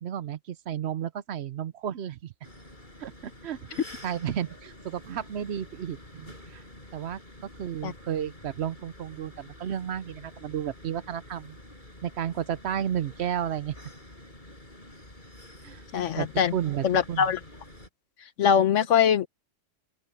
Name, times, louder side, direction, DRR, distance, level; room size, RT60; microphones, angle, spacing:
voice 1, 0.0-2.3 3.0-6.6 6.9-7.2 7.6-11.6 12.0-13.7 15.6-15.8 16.2-17.3, right 9 dB, 65° right, 0.9 m, -32 dB
sound 1, 2.4-17.9, left 1 dB, 40° left, 6.1 m, -48 dB
voice 2, 15.9-16.5 16.8-17.4 18.4-19.3, left 8 dB, 80° left, 1.3 m, -22 dB
open air
omnidirectional pair, 1.3 m